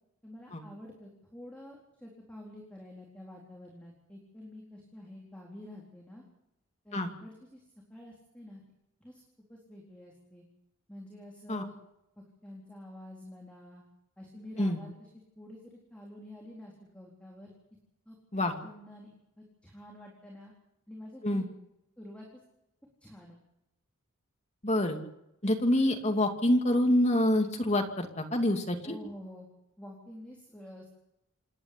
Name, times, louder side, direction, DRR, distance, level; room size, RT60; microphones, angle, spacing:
voice 1, 0.2-6.2 6.8-7.6 7.9-8.6 9.0-9.2 9.5-10.4 10.9-11.8 12.2-13.8 14.2-15.1 15.4-17.5 18.1-19.1 19.4-20.5 20.9-21.4 22.0-22.4 23.0-23.4 28.8-29.5 29.8-30.9, left 1 dB, 5° left, -2 dB, 4.1 m, -48 dB
voice 2, 24.6-25.0 25.4-29.0, left 1 dB, 30° left, 4 dB, 2.5 m, -26 dB
27.5 x 11.0 x 9.9 m, 0.83 s
head